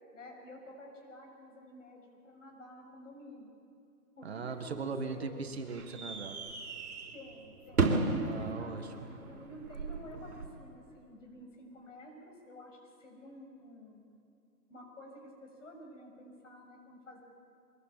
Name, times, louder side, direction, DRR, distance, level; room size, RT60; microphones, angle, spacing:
voice 1, 0.1-3.5 4.2-5.3 7.1-14.0 14.7-17.2, left 1 dB, 50° left, 1 dB, 7.1 m, -51 dB
voice 2, 4.2-6.4 8.2-9.1, right 4 dB, 40° right, 6 dB, 1.6 m, -39 dB
sound 1, 4.5-10.5, right 3 dB, 65° right, 4.1 m, -35 dB
23.5 x 21.5 x 8.7 m, 2.5 s
hypercardioid pair, 170°, 47 cm